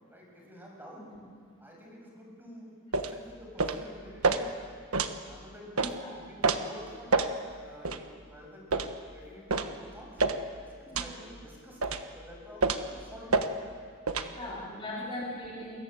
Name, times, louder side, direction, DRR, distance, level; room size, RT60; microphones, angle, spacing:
voice 1, 0.1-1.1 1.6-4.6 5.2-7.1 7.6-10.2 10.6-13.5 14.2-14.5 14.9-15.0, equal, 10° right, -1 dB, 6.9 m, -50 dB
sound 1, 2.9-3.1 3.6-3.8 4.2-4.4 4.9-5.1 5.8-5.9 6.4-6.6 7.1-7.3 7.8-8.0 8.7-8.9 9.5-9.7 10.2-10.4 10.9-11.1 11.8-12.1 12.6-12.9 13.3-13.5 14.1-14.3, right 4 dB, 80° right, 1.4 m, -27 dB
voice 2, 5.8-6.1 10.9-11.1 14.3-15.8, left 1 dB, 25° left, -5 dB, 3.8 m, -39 dB
29.0 x 22.0 x 8.0 m, 2.1 s
head